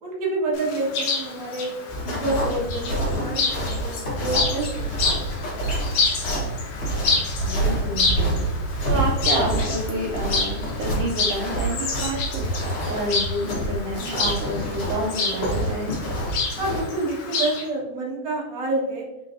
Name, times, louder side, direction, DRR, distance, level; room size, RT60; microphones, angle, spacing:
voice 1, 0.0-1.7 2.0-5.7 16.6-19.0, right 2 dB, 55° right, -4 dB, 1.2 m, -28 dB
Chirp tweet, 0.5-17.6, left 4 dB, 70° left, 1.8 m, -29 dB
sound 1, 1.9-16.8, right 1 dB, 55° left, 1.5 m, -27 dB
voice 2, 7.4-8.4 8.8-16.0, right 1 dB, 80° right, -1 dB, 1.9 m, -29 dB
5.1 x 3.1 x 2.6 m, 0.96 s
omnidirectional pair, 4.1 m